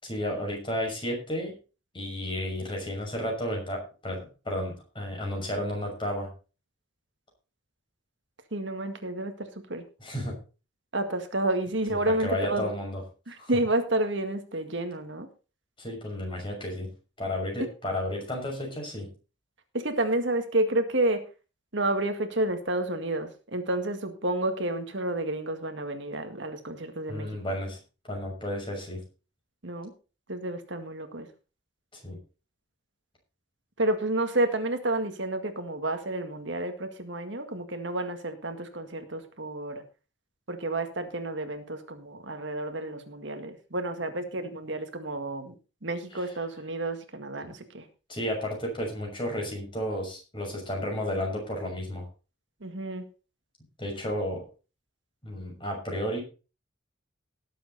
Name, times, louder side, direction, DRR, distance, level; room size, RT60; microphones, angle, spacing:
voice 1, 0.0-1.5 1.9-6.3 10.0-10.3 11.9-13.0 13.4-13.5 15.8-16.9 17.2-19.1 27.1-27.8 28.1-29.0 32.0-32.2 46.1-46.3 47.4-47.5 48.1-52.1 53.8-54.4 55.2-56.2, left 1 dB, 25° left, 0 dB, 6.3 m, -32 dB
voice 2, 8.5-9.8 10.9-12.7 13.3-15.3 17.6-17.7 19.7-21.2 21.7-27.3 29.6-29.9 30.3-31.3 33.8-39.8 40.5-45.5 45.8-47.8 52.6-53.0, right 1 dB, 60° right, 7 dB, 1.9 m, -30 dB
18.5 x 7.8 x 4.1 m, 0.34 s
head